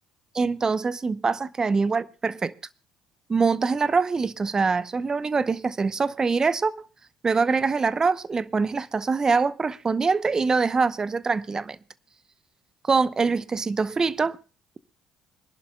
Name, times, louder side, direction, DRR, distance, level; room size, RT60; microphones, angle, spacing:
voice 1, 0.3-2.5 3.3-6.7 7.2-11.8 12.9-14.4, right 4 dB, 30° right, 0.7 m, -24 dB
25.5 x 11.0 x 2.2 m
hypercardioid pair, 55°, 2 cm